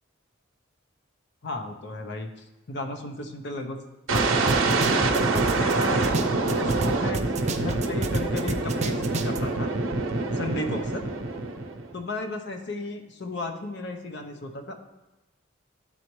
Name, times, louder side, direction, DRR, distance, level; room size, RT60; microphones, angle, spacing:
voice 1, 1.4-2.3 2.7-3.8 4.1-7.3 7.6-9.7 10.3-11.0 11.9-14.7, left 2 dB, 55° left, 5 dB, 0.7 m, -34 dB
sound 1, 4.1-4.2 4.5-6.9 7.1-9.4, right 3 dB, 35° right, 0.4 m, -30 dB
sound 2, 4.1-11.9, right 3 dB, 75° right, 0.7 m, -25 dB
11.5 x 4.1 x 3.1 m, 1.1 s
head